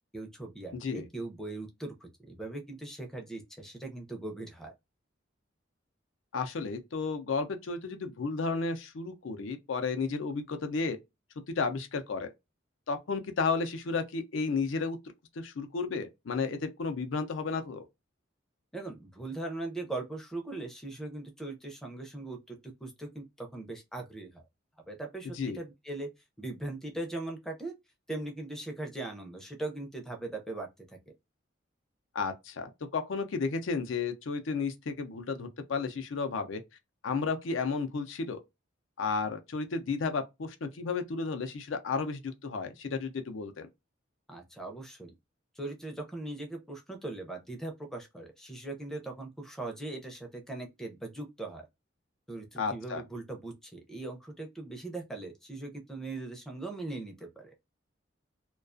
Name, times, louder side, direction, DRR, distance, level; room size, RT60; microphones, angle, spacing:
voice 1, 0.1-4.7 18.7-24.4 24.9-26.1 26.4-27.7 28.1-31.0 44.3-45.1 45.6-51.7 52.3-57.5, right 2 dB, 5° left, 0.4 m, -40 dB
voice 2, 6.3-11.0 11.5-12.3 12.9-15.0 15.4-17.9 25.3-25.6 32.1-36.6 37.0-38.4 39.0-43.7 52.6-53.0, left 4 dB, 80° left, 0.5 m, -33 dB
2.3 x 2.3 x 2.4 m
head